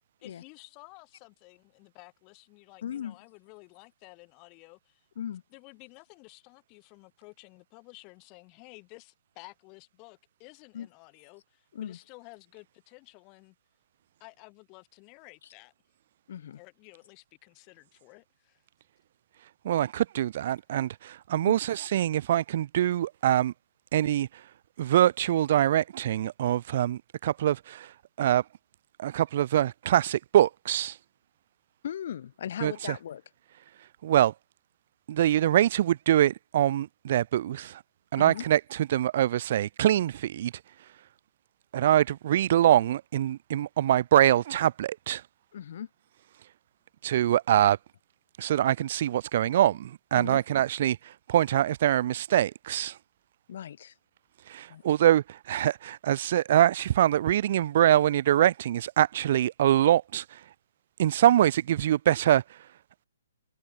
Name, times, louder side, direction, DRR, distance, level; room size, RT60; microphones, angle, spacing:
voice 1, 0.2-5.1 5.5-13.5 14.2-15.7 16.5-18.6 20.5-20.6, left 32 dB, 30° left, 4.4 m, -53 dB
voice 2, 2.8-3.2 5.2-5.4 10.7-10.9 11.7-12.0 15.4-15.5 16.3-16.6 21.5-21.6 31.8-33.2 38.1-38.5 45.5-45.9 50.1-50.4 53.5-54.0 54.7-54.8, left 9 dB, 55° left, 2.0 m, -37 dB
voice 3, 19.6-23.5 23.9-24.3 24.8-27.9 28.2-28.4 29.0-30.9 32.6-32.7 34.0-34.3 35.1-37.8 38.1-38.6 38.9-40.5 41.7-45.2 47.0-47.8 48.4-51.0 51.3-52.9 54.5-60.2 61.0-62.4, right 11 dB, 50° right, 0.4 m, -24 dB
hypercardioid pair, 145°, 0 cm